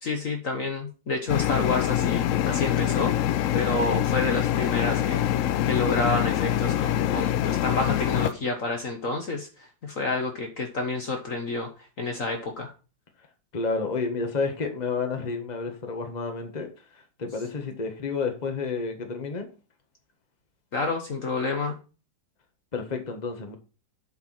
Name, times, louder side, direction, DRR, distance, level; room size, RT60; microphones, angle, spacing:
voice 1, 0.0-3.1 3.5-5.3 5.6-11.7 12.0-12.7 20.7-21.8, left 3 dB, 50° left, 1.5 m, -29 dB
sound 1, 1.3-8.3, left 11 dB, 85° left, 0.7 m, -25 dB
voice 2, 13.5-16.7 17.2-19.5 22.7-23.6, left 4 dB, 25° left, 1.4 m, -30 dB
8.1 x 4.7 x 5.9 m
omnidirectional pair, 2.0 m